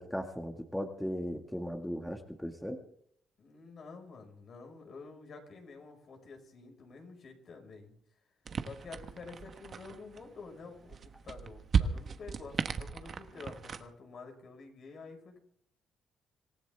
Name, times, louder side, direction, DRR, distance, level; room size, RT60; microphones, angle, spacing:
voice 1, 0.0-2.8, equal, 5° left, 3 dB, 1.8 m, -37 dB
voice 2, 3.4-7.9 8.6-15.4, left 4 dB, 55° left, 3 dB, 5.3 m, -49 dB
sound 1, 8.5-13.9, right 6 dB, 50° right, 1.3 m, -36 dB
26.0 x 15.0 x 3.5 m, 0.66 s
cardioid pair, 90°, 0 cm